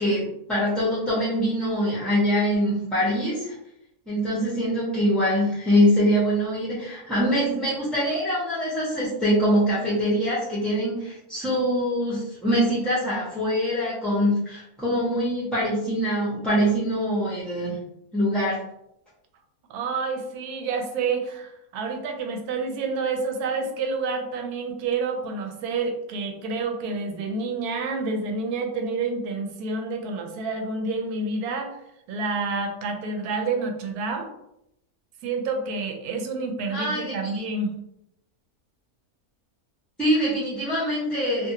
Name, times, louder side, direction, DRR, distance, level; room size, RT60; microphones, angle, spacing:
voice 1, 0.0-3.5 4.1-17.8 18.1-18.6 36.7-37.4 40.0-41.5, equal, ahead, -10 dB, 0.6 m, -24 dB
voice 2, 19.7-31.7 32.1-34.3 35.2-37.7, right 4 dB, 85° right, 4 dB, 1.1 m, -28 dB
2.5 x 2.5 x 2.8 m, 0.80 s
omnidirectional pair, 1.6 m